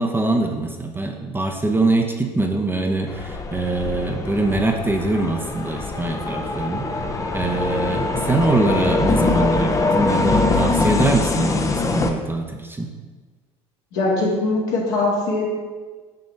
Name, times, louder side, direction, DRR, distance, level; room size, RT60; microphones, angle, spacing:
voice 1, 0.0-12.9, right 2 dB, 15° right, 3 dB, 0.8 m, -23 dB
sound 1, 3.1-12.1, left 3 dB, 20° left, 0.7 m, -23 dB
voice 2, 13.9-15.4, left 2 dB, 70° left, -4 dB, 2.0 m, -21 dB
6.3 x 5.7 x 3.3 m, 1.4 s
hypercardioid pair, 65°, 16 cm